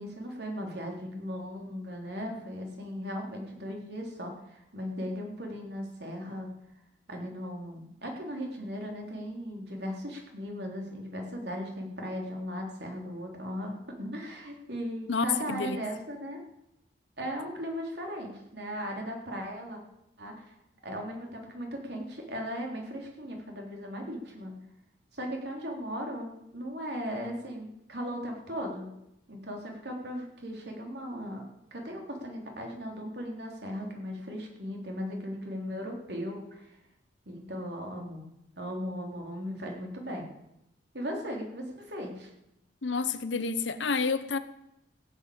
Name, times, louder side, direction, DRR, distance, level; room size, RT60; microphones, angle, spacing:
voice 1, 0.0-6.5 7.1-16.4 17.2-19.8 20.2-20.5 20.8-24.5 25.1-28.9 29.3-31.4 31.7-36.8 37.3-38.3 38.6-40.2 40.9-42.3, equal, 65° right, 3.7 m, -37 dB
voice 2, 15.1-15.8 42.8-44.4, left 4 dB, 90° left, 1.0 m, -29 dB
16.0 x 8.3 x 8.7 m
head